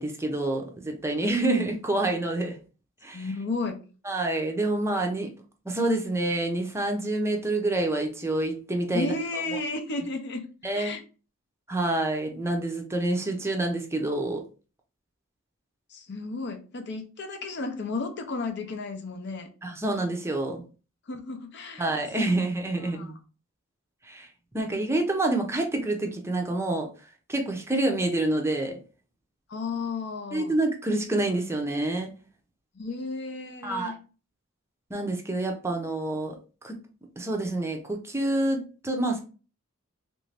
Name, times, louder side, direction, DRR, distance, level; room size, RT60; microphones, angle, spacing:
voice 1, 0.0-2.6 3.0-3.2 4.0-5.3 5.7-9.4 10.6-10.9 11.7-14.4 19.6-20.6 21.8-23.1 24.0-24.3 24.5-26.9 27.3-28.8 30.3-32.1 33.6-33.9 34.9-36.4 36.6-36.8 37.2-39.2, right 2 dB, 15° right, 0.6 m, -27 dB
voice 2, 3.1-3.8 8.9-10.5 10.7-11.0 15.9-19.5 21.1-21.9 22.2-22.3 22.9-23.1 29.5-30.6 32.8-34.0, left 3 dB, 55° left, 0.6 m, -33 dB
3.2 x 2.6 x 3.2 m
head